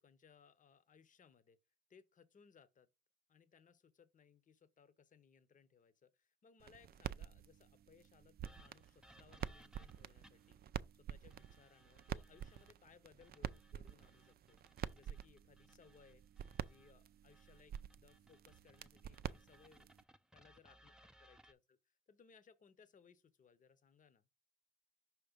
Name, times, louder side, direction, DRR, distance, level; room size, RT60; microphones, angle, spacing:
voice 1, 0.0-1.6 1.9-2.9 3.3-10.6 10.9-14.6 14.9-16.2 16.6-19.9 20.3-24.3, left 6 dB, 40° left, 0.9 m, -66 dB
sound 1, 6.6-20.0, right 9 dB, 50° right, 0.4 m, -48 dB
sound 2, 8.4-10.6 11.3-12.7 13.2-16.9 17.3-21.5, equal, 5° right, 0.5 m, -66 dB
5.9 x 3.2 x 5.1 m
cardioid pair, 90°, 20 cm